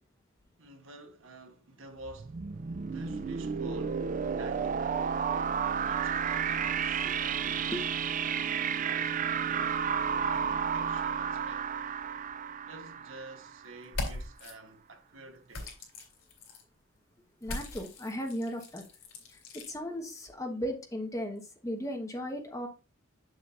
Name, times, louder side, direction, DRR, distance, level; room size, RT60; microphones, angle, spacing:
voice 1, 0.6-2.4 2.9-5.0 5.8-7.8 8.2-10.0 10.2-11.7 12.7-15.8, right 2 dB, 70° right, 1.2 m, -50 dB
sound 1, 2.0-13.7, right 7 dB, 40° right, 0.4 m, -32 dB
sound 2, 13.8-14.5 15.5-16.6 17.4-19.7, left 2 dB, 85° left, 3.1 m, -40 dB
voice 2, 17.4-18.8 19.3-19.4 19.7-22.7, equal, 15° left, 1.1 m, -36 dB
7.4 x 7.2 x 2.5 m
head